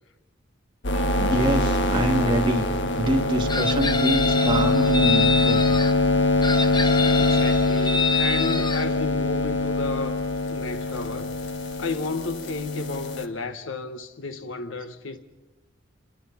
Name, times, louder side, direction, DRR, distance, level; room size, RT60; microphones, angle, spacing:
sound 1, 0.8-13.3, left 2 dB, 65° left, 1.5 m, -23 dB
sound 2, 0.9-12.4, right 1 dB, ahead, 4.6 m, -41 dB
voice 1, 1.2-2.7 3.0-5.6, right 1 dB, 25° right, 2.5 m, -25 dB
Chicken rooster, 3.5-5.9 6.4-8.8, left 4 dB, 20° left, 1.0 m, -27 dB
voice 2, 7.2-11.3 11.8-15.2, left 3 dB, 90° left, 1.2 m, -32 dB
27.5 x 21.5 x 5.7 m
head